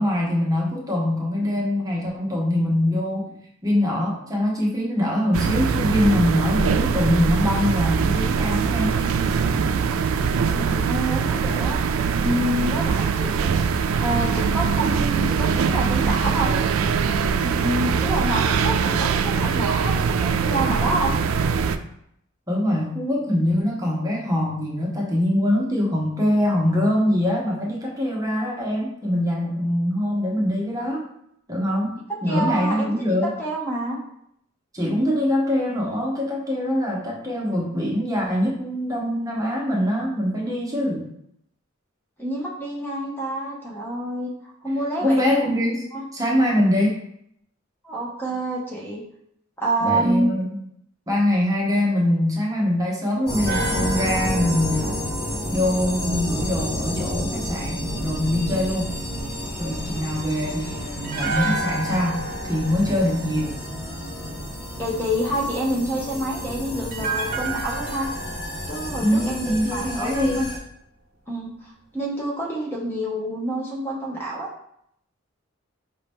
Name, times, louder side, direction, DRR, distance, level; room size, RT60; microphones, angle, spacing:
voice 1, 0.0-9.0 22.5-31.1 31.5-31.9 32.2-33.3 34.7-41.1 45.0-45.8 46.1-47.0 49.8-50.5 51.1-55.1 55.5-59.0 59.6-62.2 62.5-63.6 69.0-70.5, left 1 dB, 15° right, -3 dB, 0.9 m, -23 dB
sound 1, 5.3-21.8, right 6 dB, 80° right, 0.3 m, -22 dB
voice 2, 10.5-11.8 12.2-13.5 14.0-16.6 17.4-21.2 32.3-32.9 33.4-34.0 42.2-45.2 45.9-46.0 47.8-49.0 49.6-50.3 64.8-68.1 68.7-70.4 71.3-74.5, right 1 dB, 10° left, -4 dB, 0.8 m, -27 dB
sound 2, 53.3-70.6, equal, 45° left, 1.6 m, -30 dB
sound 3, 53.5-56.6 61.0-64.3 66.9-70.1 70.4-70.5, right 3 dB, 45° right, 0.6 m, -32 dB
5.2 x 2.8 x 3.5 m, 0.73 s
head